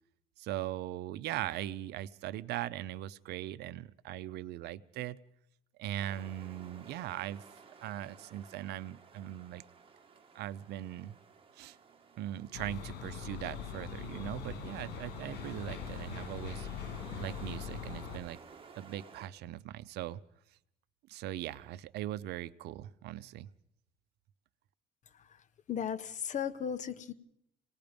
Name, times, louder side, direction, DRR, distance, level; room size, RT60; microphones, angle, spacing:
voice 1, 0.4-5.2 5.8-7.5 7.8-9.6 10.3-11.2 11.6-11.8 12.2-16.7 17.2-18.4 18.8-20.2 21.1-23.5, right 13 dB, 80° right, 16 dB, 0.7 m, -40 dB
sound 1, 6.0-19.3, right 5 dB, 30° right, 2.1 m, -55 dB
sound 2, 12.5-18.2, left 7 dB, 80° left, 2.4 m, -42 dB
voice 2, 25.7-27.1, left 8 dB, 45° left, 11 dB, 1.2 m, -35 dB
27.0 x 18.5 x 5.2 m, 0.78 s
cardioid pair, 110°, 17 cm